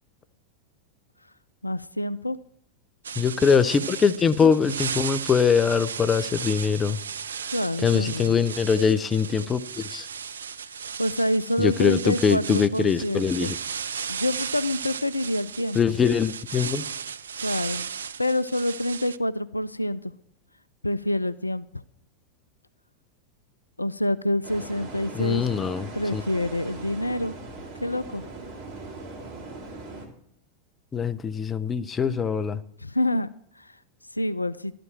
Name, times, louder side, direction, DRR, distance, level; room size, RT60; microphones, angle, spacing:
voice 1, 1.6-2.4 7.5-8.4 10.6-13.5 14.1-15.8 17.4-17.9 18.2-20.1 20.8-21.7 23.8-25.4 25.9-27.4 27.8-28.2 32.8-33.3 33.6-33.7 34.1-34.7, left 1 dB, 85° left, 16 dB, 0.3 m, -27 dB
sound 1, 3.0-19.2, right 7 dB, 70° right, 0.4 m, -35 dB
voice 2, 3.2-7.0 7.8-10.1 11.6-13.6 15.7-16.8 25.1-26.2 30.9-32.6, left 6 dB, 20° left, 13 dB, 0.5 m, -23 dB
sound 2, 24.4-30.1, right 3 dB, 40° right, 2.8 m, -40 dB
12.5 x 5.2 x 7.5 m, 0.73 s
figure-of-eight pair, 90°, 0 cm